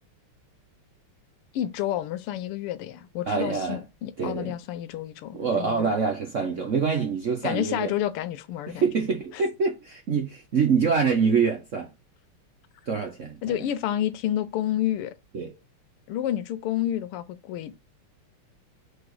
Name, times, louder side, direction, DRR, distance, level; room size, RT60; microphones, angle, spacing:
voice 1, 1.5-6.0 7.4-8.8 9.3-9.5 13.4-15.2 16.1-17.7, left 12 dB, 90° left, 1.6 m, -29 dB
voice 2, 3.3-3.8 4.2-4.5 5.3-7.9 8.7-11.9 12.9-13.4 15.3-15.5, right 5 dB, 60° right, 0.8 m, -25 dB
4.9 x 4.2 x 4.7 m
omnidirectional pair, 2.4 m